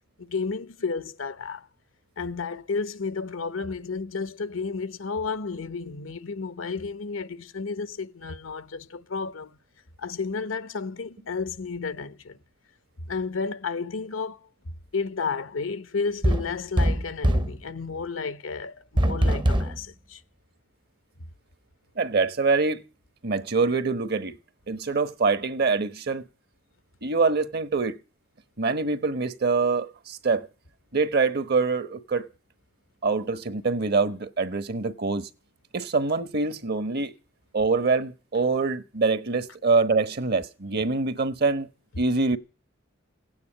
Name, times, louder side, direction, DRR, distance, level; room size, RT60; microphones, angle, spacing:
voice 1, 0.2-1.7 2.2-9.6 10.0-12.4 13.1-14.4 14.9-20.2, left 4 dB, 85° left, 1.0 m, -32 dB
sound 1, 16.2-17.6 19.0-19.8, equal, 25° right, 0.7 m, -22 dB
voice 2, 21.9-22.8 23.2-24.4 24.7-26.2 27.0-28.0 28.6-30.5 30.9-32.3 33.0-35.3 35.7-37.1 37.5-41.7 42.0-42.4, right 4 dB, 55° right, 1.2 m, -25 dB
16.5 x 9.4 x 8.9 m
head